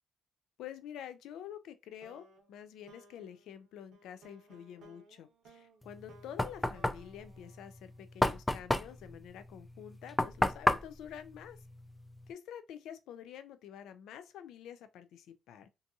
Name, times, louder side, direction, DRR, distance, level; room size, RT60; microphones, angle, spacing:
voice 1, 0.6-11.6 12.3-15.7, left 9 dB, 85° left, 0.4 m, -48 dB
sound 1, 2.0-8.4, right 2 dB, 80° right, 0.7 m, -61 dB
Knock, 5.8-12.3, left 1 dB, 10° left, 0.3 m, -33 dB
2.6 x 2.3 x 2.6 m
cardioid pair, 90°, 0 cm